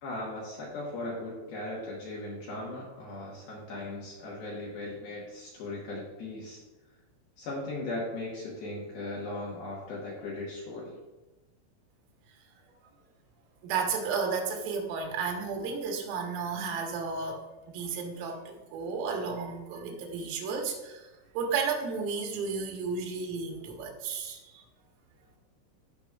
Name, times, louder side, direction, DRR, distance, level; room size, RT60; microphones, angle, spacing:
voice 1, 0.0-6.6 7.4-10.9, left 2 dB, 70° left, -4 dB, 2.5 m, -38 dB
voice 2, 13.6-17.4 17.7-21.0 21.4-24.4, right 5 dB, 85° right, 2 dB, 3.7 m, -33 dB
15.5 x 6.1 x 2.4 m, 1.1 s
omnidirectional pair, 5.9 m